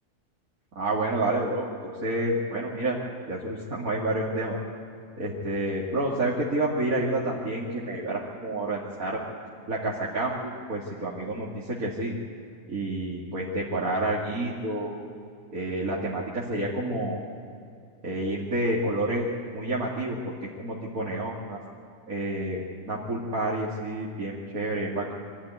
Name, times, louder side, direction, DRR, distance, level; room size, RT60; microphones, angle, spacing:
voice 1, 0.8-3.0 3.3-4.6 5.2-9.2 9.7-12.2 12.7-15.0 15.5-17.2 18.0-19.3 19.5-20.3 20.6-21.6 22.1-22.6 22.9-25.1, right 1 dB, 65° right, -5 dB, 2.8 m, -29 dB
24.0 x 14.5 x 9.4 m, 2.3 s
omnidirectional pair, 1.6 m